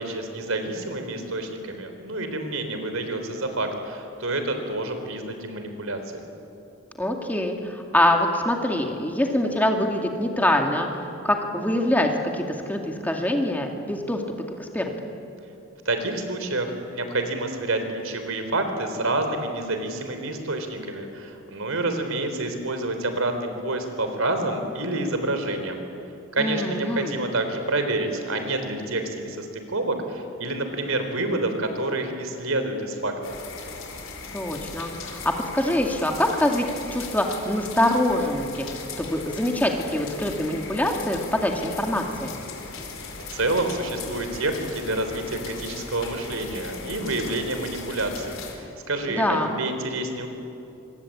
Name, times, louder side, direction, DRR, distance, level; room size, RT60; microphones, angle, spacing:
voice 1, 0.0-6.0 15.9-25.8 26.3-33.1 43.3-50.3, right 2 dB, 85° right, 6 dB, 3.8 m, -28 dB
voice 2, 7.0-10.9 11.2-14.2 14.6-15.1 26.4-27.1 34.3-36.7 36.9-38.7 39.0-42.3 49.1-49.6, left 1 dB, 10° left, 2 dB, 2.3 m, -24 dB
sound 1, 33.2-48.5, left 4 dB, 75° left, 4.6 m, -38 dB
26.5 x 24.5 x 8.7 m, 2.7 s
head